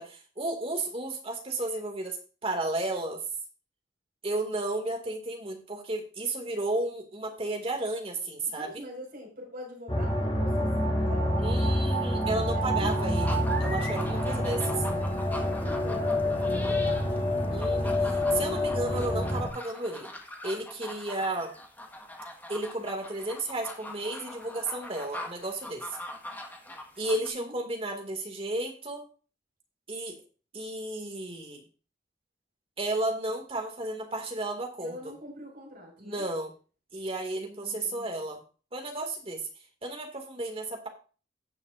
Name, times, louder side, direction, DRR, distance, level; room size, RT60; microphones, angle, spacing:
voice 1, 0.0-2.2 2.4-3.2 4.2-8.9 11.4-14.8 17.5-20.1 20.4-21.5 22.5-26.0 27.0-29.0 29.9-30.2 30.5-31.6 32.8-35.1 36.0-36.5 36.9-38.4 38.7-39.4 39.8-40.9, right 2 dB, 30° right, 3 dB, 2.2 m, -33 dB
voice 2, 8.5-11.5 12.5-13.0 15.4-17.3 27.2-27.6 34.8-36.2 37.4-38.2, equal, 55° right, -2 dB, 5.5 m, -44 dB
sound 1, 9.9-19.5, left 1 dB, 30° left, 3.3 m, -27 dB
sound 2, 12.8-27.3, left 1 dB, 10° left, 1.5 m, -42 dB
17.5 x 7.2 x 2.6 m, 0.37 s
head